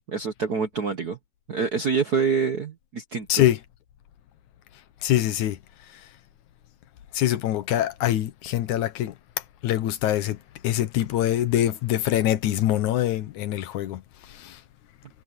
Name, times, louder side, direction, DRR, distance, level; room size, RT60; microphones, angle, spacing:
voice 1, 0.1-1.2 1.5-3.4, right 5 dB, 60° right, 1.0 m, -26 dB
voice 2, 5.0-5.6 7.1-9.1 9.6-10.4 10.6-14.0 14.3-14.6, left 13 dB, 85° left, 2.5 m, -24 dB
omnidirectional pair, 3.3 m